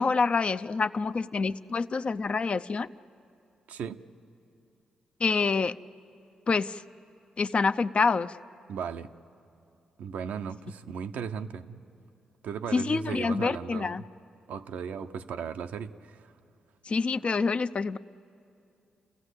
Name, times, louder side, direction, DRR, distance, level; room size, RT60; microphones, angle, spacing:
voice 1, 0.0-2.9 5.2-5.8 6.5-6.8 7.4-8.4 12.7-14.0 16.9-18.0, left 4 dB, 45° left, 12 dB, 0.5 m, -27 dB
voice 2, 3.7-4.0 8.7-9.1 10.0-11.8 12.4-14.0 14.5-16.2, right 7 dB, 80° right, 8 dB, 0.7 m, -36 dB
30.0 x 15.0 x 8.1 m, 2.6 s
supercardioid pair, 50°, 3 cm